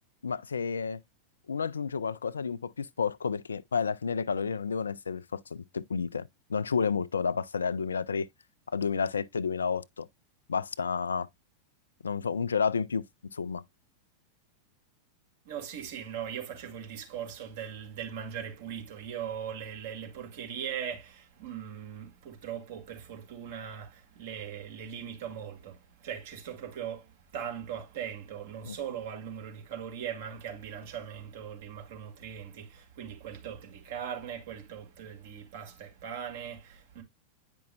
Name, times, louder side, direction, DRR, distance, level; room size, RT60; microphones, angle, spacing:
voice 1, 0.2-1.0 1.5-8.3 8.7-10.1 10.5-11.3 12.0-13.0 13.3-13.6 28.6-28.8, left 5 dB, 70° left, 0.3 m, -31 dB
voice 2, 15.4-37.0, right 8 dB, 55° right, 2.1 m, -40 dB
9.3 x 5.3 x 2.3 m
figure-of-eight pair, 90°, 0 cm